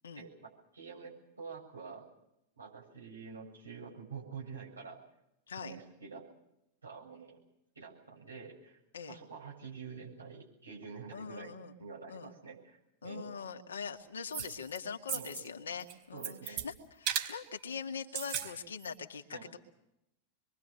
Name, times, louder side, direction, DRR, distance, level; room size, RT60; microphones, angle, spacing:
voice 1, 0.1-2.1 2.6-5.0 5.6-6.3 6.8-7.4 7.7-8.8 9.1-13.3 15.1-15.4 16.1-16.6 19.3-19.5, right 5 dB, 75° right, -1 dB, 7.5 m, -47 dB
voice 2, 11.1-11.7 12.1-12.3 13.0-19.4, left 6 dB, 70° left, 4 dB, 2.0 m, -42 dB
sound 1, 14.3-14.8 15.1-15.5 15.8-16.7 17.1-17.3 18.0-18.5 18.8-18.9, right 8 dB, 45° right, 3.8 m, -36 dB
26.5 x 23.0 x 6.8 m, 0.84 s
figure-of-eight pair, 90°, 0 cm